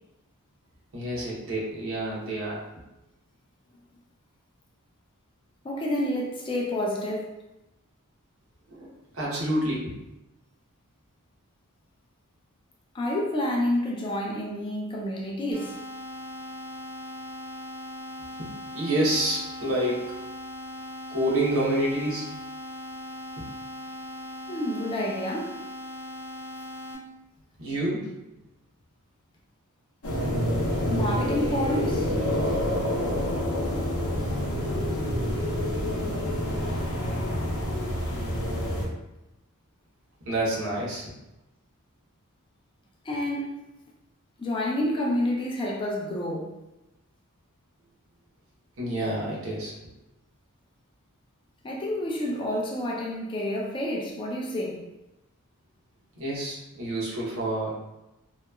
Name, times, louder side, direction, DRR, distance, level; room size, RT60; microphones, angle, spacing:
voice 1, 0.9-2.8 8.7-8.9 9.1-10.0 18.4-20.1 21.1-22.2 23.4-23.5 27.6-28.1 40.2-41.1 48.8-49.7 56.2-57.8, right 1 dB, 65° right, 0.8 m, -28 dB
voice 2, 5.6-7.4 12.9-15.8 24.5-25.6 30.9-32.1 43.0-43.7 44.4-46.6 51.6-54.9, left 1 dB, 25° left, 0.3 m, -29 dB
sound 1, 15.5-26.9, left 1 dB, 10° right, 1.0 m, -39 dB
sound 2, 30.0-38.9, left 1 dB, 70° left, 0.6 m, -27 dB
2.8 x 2.2 x 2.2 m
head